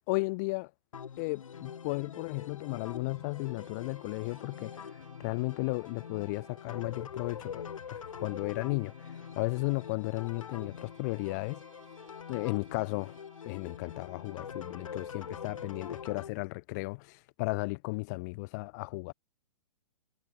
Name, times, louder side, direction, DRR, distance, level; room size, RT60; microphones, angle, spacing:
voice 1, 0.1-0.7 1.2-11.6 12.3-13.2 13.4-19.1, left 26 dB, 30° left, 0.5 m, -35 dB
sound 1, 0.9-16.3, left 7 dB, 70° left, 0.7 m, -44 dB
Bowed string instrument, 2.5-16.4, right 5 dB, 75° right, 3.1 m, -62 dB
figure-of-eight pair, 115°, 17 cm